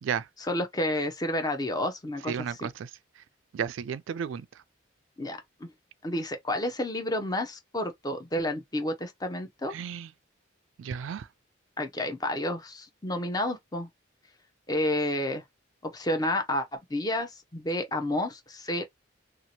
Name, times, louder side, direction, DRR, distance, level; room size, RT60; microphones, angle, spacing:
voice 1, 0.5-2.3 2.6-2.7 5.2-5.7 6.0-9.7 11.8-13.9 14.7-15.4 15.8-18.9, left 1 dB, 20° left, 0.6 m, -30 dB
voice 2, 2.3-2.9 3.2-3.3 3.5-4.6 9.7-10.1 10.8-11.3, right 7 dB, 75° right, 0.3 m, -33 dB
2.8 x 2.5 x 2.8 m
head